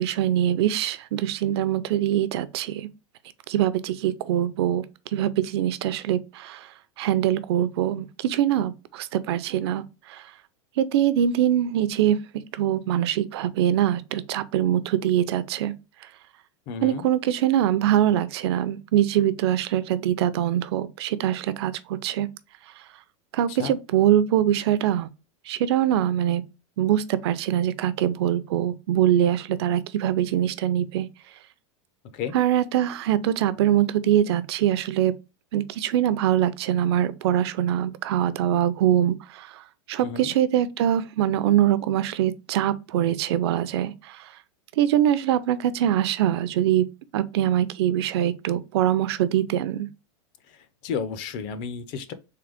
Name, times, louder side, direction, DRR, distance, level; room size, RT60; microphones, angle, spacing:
voice 1, 0.0-2.9 3.5-4.8 5.1-6.7 7.0-10.2 10.8-12.2 12.5-15.8 16.8-22.3 23.3-25.1 25.5-26.4 26.8-31.1 32.3-35.1 35.5-44.3 44.8-46.9 47.1-49.9, right 11 dB, 55° right, 0.4 m, -23 dB
voice 2, 16.7-17.0 23.5-23.8 32.1-32.3 40.0-40.3 50.5-52.1, left 6 dB, 30° left, 0.4 m, -33 dB
3.8 x 3.2 x 3.4 m
supercardioid pair, 180°, 16 cm